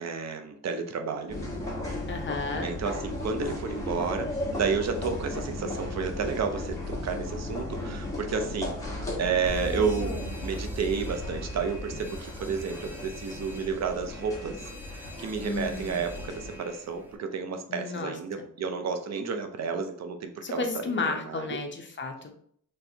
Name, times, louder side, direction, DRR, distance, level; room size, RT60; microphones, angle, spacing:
voice 1, 0.0-1.4 2.6-10.2 10.4-14.6 14.9-20.6 21.0-21.5, right 5 dB, 60° right, 6 dB, 0.6 m, -31 dB
sound 1, 1.3-16.6, left 1 dB, 10° left, 1.3 m, -36 dB
voice 2, 2.1-2.7 15.4-16.1 17.7-18.5 20.4-22.3, left 4 dB, 40° left, 4 dB, 0.7 m, -33 dB
Alarm, 9.5-17.2, right 1 dB, 5° right, 0.5 m, -41 dB
4.3 x 3.2 x 2.7 m, 0.62 s
wide cardioid pair, 130°, 30 cm